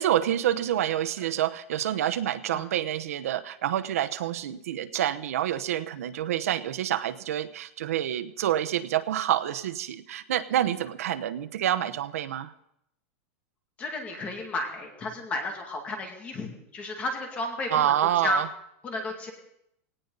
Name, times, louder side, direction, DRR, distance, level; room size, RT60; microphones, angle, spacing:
voice 1, 0.0-12.5 17.7-18.5, right 11 dB, 85° right, 10 dB, 1.0 m, -27 dB
voice 2, 13.8-18.4 18.8-19.3, left 2 dB, 15° left, 3 dB, 2.2 m, -33 dB
18.0 x 18.0 x 4.0 m, 0.76 s
supercardioid pair, 175°, 8 cm